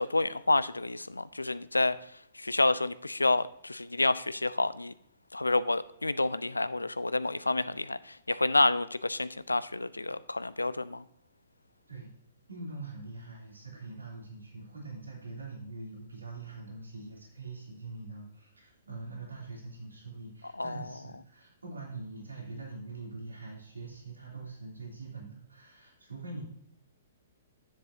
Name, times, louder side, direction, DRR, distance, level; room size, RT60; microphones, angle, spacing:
voice 1, 0.0-2.0 2.3-4.9 5.3-11.0 20.6-20.8, left 2 dB, 90° left, 17 dB, 0.4 m, -29 dB
voice 2, 12.5-26.4, right 3 dB, 85° right, -3 dB, 3.0 m, -43 dB
9.8 x 7.4 x 2.8 m, 0.70 s
figure-of-eight pair, 120°, 0 cm